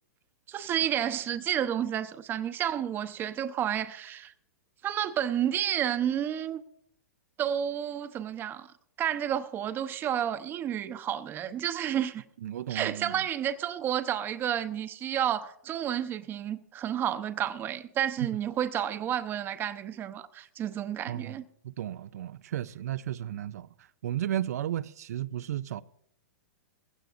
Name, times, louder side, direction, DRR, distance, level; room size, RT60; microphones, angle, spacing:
voice 1, 0.5-4.3 4.8-6.6 7.4-8.7 9.0-12.2 12.7-21.4, right 10 dB, 25° right, 0.8 m, -31 dB
voice 2, 12.4-13.2 21.1-21.4 21.6-25.8, right 11 dB, 70° right, 0.5 m, -34 dB
20.0 x 16.0 x 2.6 m
hypercardioid pair, 135°, 9 cm